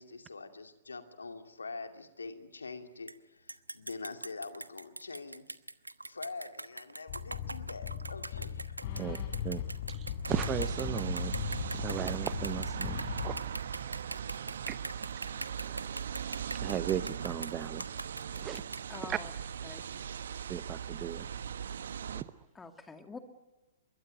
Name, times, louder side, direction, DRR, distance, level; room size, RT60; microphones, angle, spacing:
voice 1, 0.0-5.5 6.0-9.2, left 3 dB, 75° left, 2.6 m, -45 dB
sound 1, 3.1-3.2 3.5-19.3, right 2 dB, 85° right, 1.1 m, -42 dB
sound 2, 7.1-13.4, left 8 dB, 45° left, 3.8 m, -38 dB
voice 2, 8.8-9.3 18.9-19.3 19.6-19.8 22.5-23.2, left 4 dB, 10° left, 2.5 m, -47 dB
voice 3, 9.9-11.3 11.7-13.4 14.7-14.8 15.6-15.9 16.5-17.9 18.4-18.6 19.0-19.2 20.5-21.3 22.1-22.3, right 10 dB, 25° right, 0.9 m, -36 dB
sound 3, 10.3-22.2, right 8 dB, 60° right, 1.3 m, -39 dB
25.0 x 22.5 x 9.2 m
figure-of-eight pair, 115°, 0 cm